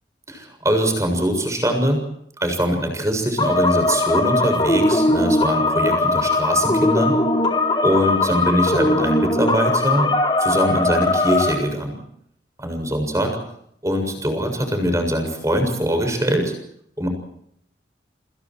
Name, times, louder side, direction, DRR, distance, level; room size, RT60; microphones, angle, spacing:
voice 1, 0.3-2.0 2.4-7.2 7.8-10.1 10.4-12.0 12.6-13.4 13.8-16.5 17.0-17.1, equal, 15° right, 5 dB, 7.1 m, -22 dB
sound 1, 3.4-11.5, left 2 dB, 25° left, 4.2 m, -19 dB
28.5 x 27.5 x 4.7 m, 0.69 s
head